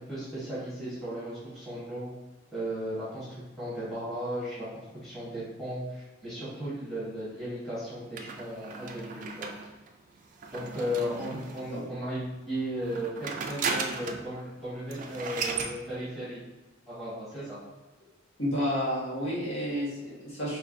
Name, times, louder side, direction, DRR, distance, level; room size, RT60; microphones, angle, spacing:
voice 1, 0.0-2.1 2.5-9.5 10.5-12.2 12.5-16.4 16.9-17.6, equal, ahead, -11 dB, 1.1 m, -35 dB
sound 1, 8.2-11.8 12.8-14.3 14.6-14.7 14.9-15.8, right 4 dB, 40° right, 0.3 m, -36 dB
voice 2, 18.4-20.6, equal, 70° left, -7 dB, 1.5 m, -31 dB
4.3 x 2.8 x 2.6 m, 1.1 s
head